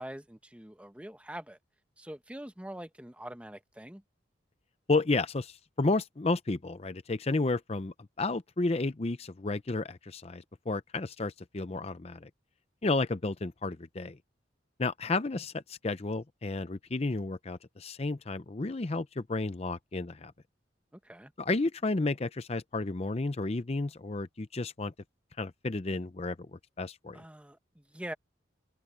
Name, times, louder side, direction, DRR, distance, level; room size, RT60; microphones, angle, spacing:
voice 1, 0.0-1.6 2.0-4.0 20.9-21.3 27.1-28.1, right 1 dB, 5° right, 0.9 m, -44 dB
voice 2, 4.9-12.3 12.8-14.2 14.8-20.3 21.4-24.9 25.4-27.2, left 3 dB, 35° left, 0.6 m, -32 dB
head